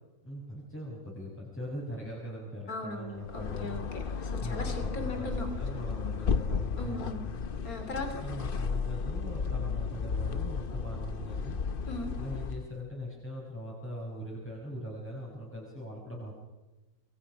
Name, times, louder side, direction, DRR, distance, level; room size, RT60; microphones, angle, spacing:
voice 1, 0.2-3.8 4.4-7.4 8.1-11.6 12.2-16.4, equal, 10° left, -4 dB, 5.4 m, -41 dB
voice 2, 2.7-5.5 6.8-7.2 7.6-8.2 11.9-12.1, left 2 dB, 70° left, 6 dB, 3.6 m, -38 dB
sound 1, 3.2-12.7, left 5 dB, 45° left, 0.9 m, -33 dB
26.5 x 22.0 x 6.1 m, 1.1 s
omnidirectional pair, 1.6 m